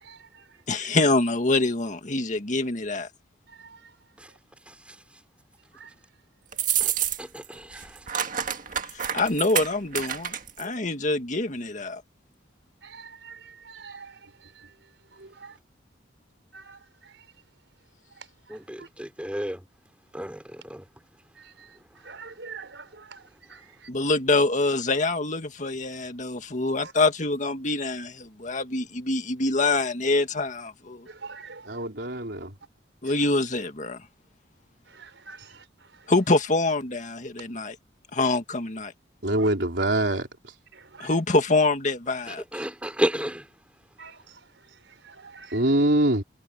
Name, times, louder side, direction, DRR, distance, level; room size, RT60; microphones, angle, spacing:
voice 1, 0.7-3.1 8.9-12.0 23.9-31.1 33.0-34.0 36.1-37.8 38.1-38.9 41.0-42.4, left 2 dB, 45° left, 1.9 m, -25 dB
sound 1, 6.5-7.4 7.7-10.6, right 9 dB, 50° right, 1.7 m, -28 dB
voice 2, 7.2-7.9 18.5-19.6 20.1-20.8 42.3-43.4, equal, 5° right, 5.2 m, -31 dB
voice 3, 22.0-22.8 31.2-31.6 35.0-35.4 44.0-44.1 45.1-45.5, right 4 dB, 85° right, 4.8 m, -42 dB
voice 4, 31.7-32.5 39.2-40.3 45.5-46.2, right 1 dB, 70° right, 4.2 m, -23 dB
head